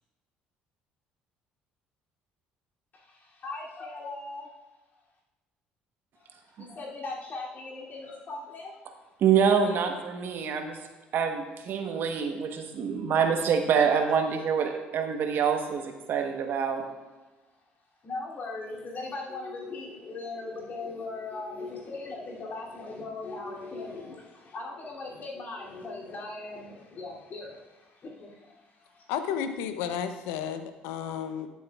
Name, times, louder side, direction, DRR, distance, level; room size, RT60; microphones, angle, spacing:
voice 1, 2.9-4.5 6.2-6.3 6.6-8.8 18.0-29.1, left 3 dB, 45° left, -4 dB, 2.8 m, -39 dB
voice 2, 9.2-10.8 11.1-16.8, right 6 dB, 60° right, 5 dB, 1.1 m, -26 dB
voice 3, 29.1-31.5, left 8 dB, 80° left, 9 dB, 0.7 m, -32 dB
12.5 x 7.2 x 2.4 m, 1.2 s
hypercardioid pair, 65°, 4 cm